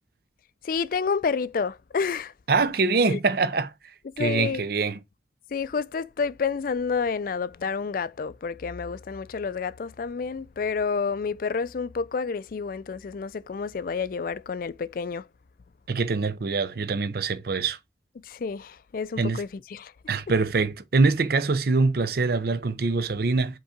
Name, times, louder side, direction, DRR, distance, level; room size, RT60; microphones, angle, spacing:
voice 1, 0.6-2.3 3.0-3.2 4.2-4.6 5.5-15.3 18.2-19.9, left 5 dB, 50° left, 0.3 m, -29 dB
voice 2, 2.5-3.7 4.2-5.0 15.9-17.8 19.2-19.4 20.1-23.6, right 4 dB, 55° right, 0.6 m, -24 dB
5.2 x 3.8 x 5.0 m
head